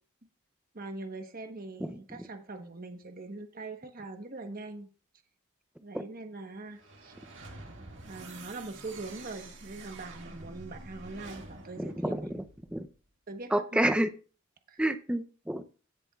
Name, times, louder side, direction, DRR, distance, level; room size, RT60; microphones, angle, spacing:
voice 1, 0.7-4.9 5.8-7.1 8.0-12.3 13.3-13.5 14.7-14.8, right 3 dB, 40° right, 6 dB, 1.2 m, -42 dB
sound 1, 6.7-13.0, right 2 dB, 55° right, 2.1 m, -48 dB
voice 2, 11.8-12.4 12.7-12.9 13.5-14.1 14.8-15.6, right 1 dB, 5° right, 9 dB, 0.6 m, -28 dB
16.5 x 7.0 x 2.4 m, 0.36 s
head